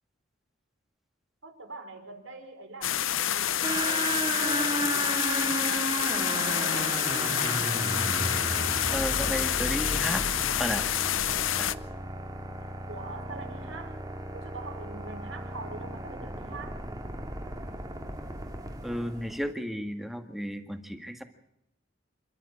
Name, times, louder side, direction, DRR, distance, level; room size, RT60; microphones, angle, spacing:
voice 1, 1.4-7.5 12.9-14.0 14.3-16.8, right 3 dB, 85° right, 5 dB, 5.3 m, -44 dB
sound 1, 2.8-11.7, left 11 dB, 90° left, 0.7 m, -28 dB
sound 2, 3.6-19.5, right 1 dB, 20° right, 2.3 m, -34 dB
voice 2, 8.9-10.2 10.6-10.9 11.6-11.7 18.8-21.2, equal, ahead, 7 dB, 1.9 m, -33 dB
28.0 x 12.5 x 8.6 m, 0.80 s
head